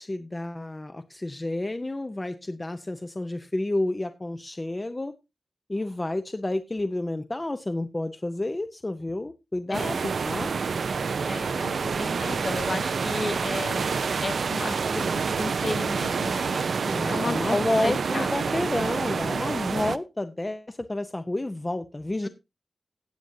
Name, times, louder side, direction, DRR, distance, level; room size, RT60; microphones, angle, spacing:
voice 1, 0.0-5.1 5.7-10.5 16.8-22.3, left 2 dB, 20° left, 9 dB, 0.6 m, -30 dB
voice 2, 9.7-10.1 11.3-13.9 14.2-18.6, left 3 dB, 50° left, 7 dB, 1.3 m, -34 dB
sound 1, 9.7-20.0, right 5 dB, 75° right, 0.5 m, -28 dB
16.5 x 7.7 x 2.7 m, 0.25 s
wide cardioid pair, 140°, 0 cm